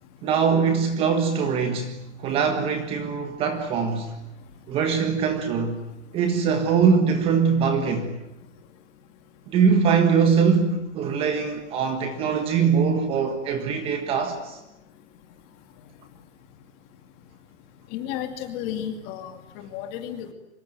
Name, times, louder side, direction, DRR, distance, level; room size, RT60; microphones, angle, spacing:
voice 1, 0.2-4.2 4.7-5.8 6.1-8.1 9.5-14.6, right 6 dB, 15° right, 7 dB, 1.5 m, -22 dB
voice 2, 17.9-20.3, left 10 dB, 25° left, 7 dB, 2.5 m, -33 dB
25.0 x 23.0 x 9.1 m, 0.89 s
hypercardioid pair, 165°, 36 cm